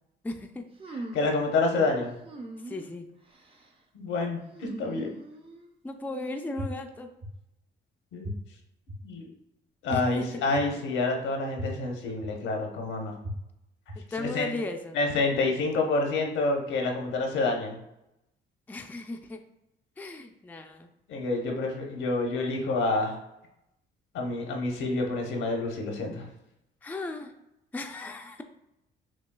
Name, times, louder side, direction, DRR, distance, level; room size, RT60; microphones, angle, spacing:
voice 1, 0.2-0.6 2.6-3.1 5.8-7.1 9.9-10.3 13.9-15.0 18.7-19.4 20.0-20.9 26.8-27.3 27.7-28.4, left 2 dB, 10° left, 4 dB, 0.4 m, -36 dB
sound 1, 0.8-1.4 2.2-2.9 3.3-3.7 4.5-5.7, right 2 dB, 30° right, 0.6 m, -41 dB
voice 2, 1.1-2.2 3.9-5.2 8.1-8.3 9.0-9.3 9.8-13.2 14.2-14.5 14.9-17.8 21.1-23.1 24.1-26.3, left 3 dB, 80° left, 1 dB, 0.9 m, -28 dB
sound 2, 6.6-6.7 7.2-7.3 8.2-8.3 8.9-9.0 9.9-10.0 10.5-10.6 11.6-11.7 12.2-12.3 13.2-13.3 13.9-14.0, right 1 dB, 60° right, 1.0 m, -35 dB
6.2 x 2.3 x 2.2 m, 0.87 s
cardioid pair, 90°, 20 cm